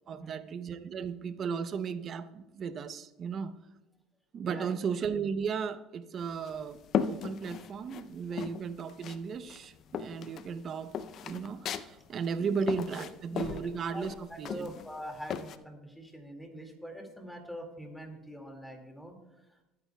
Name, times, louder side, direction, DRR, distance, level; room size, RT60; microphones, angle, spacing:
voice 1, 0.1-3.5 4.3-6.8 7.1-11.0 11.2-14.7, right 6 dB, 40° right, 0.7 m, -35 dB
voice 2, 4.4-4.8 8.3-8.4 12.4-12.5 13.2-14.0 14.3-19.6, equal, ahead, 2.1 m, -44 dB
sound 1, 6.2-8.1 8.4-9.2 9.5-15.6, left 8 dB, 50° left, 0.5 m, -36 dB
19.5 x 9.5 x 2.3 m
supercardioid pair, 110°, 0 cm